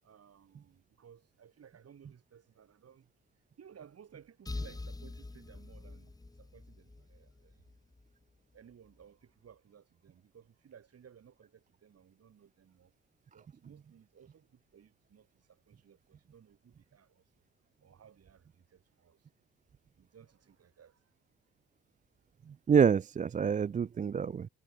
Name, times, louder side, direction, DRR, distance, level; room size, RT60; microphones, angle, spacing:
voice 1, 0.0-3.1 3.6-7.8 8.5-12.9 13.3-17.5 17.8-19.3 19.9-21.1, right 8 dB, 55° right, 7.8 m, -59 dB
sound 1, 4.5-8.1, left 2 dB, 10° left, 1.1 m, -44 dB
voice 2, 22.5-24.5, right 7 dB, 25° right, 0.4 m, -27 dB
cardioid pair, 90°, 30 cm